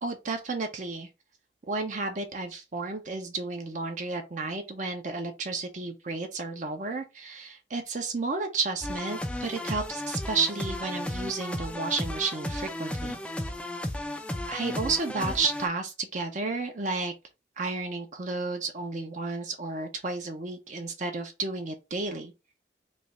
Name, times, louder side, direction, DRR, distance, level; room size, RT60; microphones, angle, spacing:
voice 1, 0.0-1.1 1.7-13.2 14.5-17.1 17.6-22.3, right 3 dB, 45° right, 0.6 m, -32 dB
sound 1, 8.8-15.7, left 1 dB, 5° left, 0.3 m, -34 dB
3.2 x 2.4 x 4.0 m
head